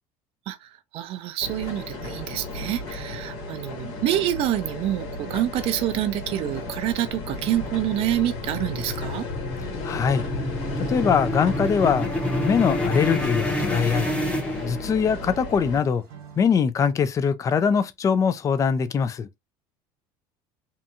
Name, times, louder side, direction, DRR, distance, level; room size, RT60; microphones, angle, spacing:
voice 1, 0.5-9.3, right 12 dB, 55° right, 0.4 m, -27 dB
sound 1, 1.4-15.8, left 3 dB, 70° left, 1.2 m, -34 dB
sound 2, 2.0-16.6, right 7 dB, 80° right, 1.2 m, -47 dB
sound 3, 8.6-15.2, left 1 dB, 10° left, 0.8 m, -28 dB
voice 2, 9.8-10.2 10.9-12.1 12.4-14.1 14.6-16.0 16.4-19.3, left 6 dB, 25° left, 0.4 m, -22 dB
2.7 x 2.3 x 2.6 m
supercardioid pair, 110°, 12 cm